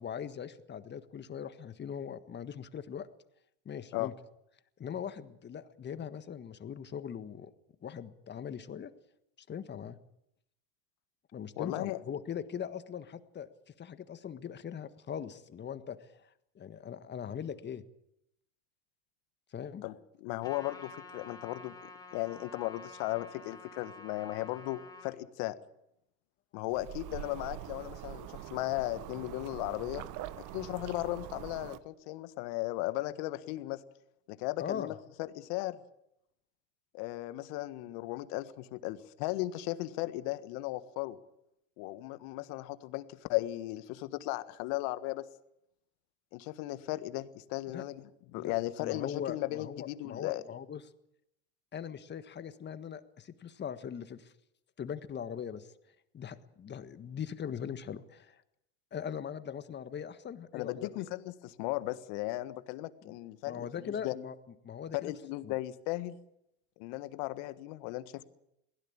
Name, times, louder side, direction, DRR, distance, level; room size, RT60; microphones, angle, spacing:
voice 1, 0.0-3.1 3.6-4.1 4.8-7.5 7.8-8.9 9.5-10.0 11.3-16.3 16.5-17.8 19.5-19.8 34.6-34.9 47.7-47.8 48.3-48.5 48.8-50.8 51.7-54.3 54.8-55.7 56.1-58.4 58.9-60.9 63.0-63.1 63.5-64.4 64.6-65.1 65.4-65.5, left 8 dB, 30° left, 12 dB, 1.6 m, -41 dB
voice 2, 11.6-12.0 19.8-25.5 26.5-30.0 30.4-33.8 34.3-35.8 36.9-41.2 41.8-45.3 46.3-50.4 60.5-64.1 64.9-66.2 66.8-68.2, left 17 dB, 60° left, 13 dB, 1.6 m, -36 dB
Trumpet, 20.4-25.1, left 3 dB, 10° left, 3.9 m, -50 dB
sound 1, 26.7-31.8, right 14 dB, 50° right, 1.3 m, -44 dB
22.5 x 16.5 x 8.7 m, 0.80 s
supercardioid pair, 105°, 38 cm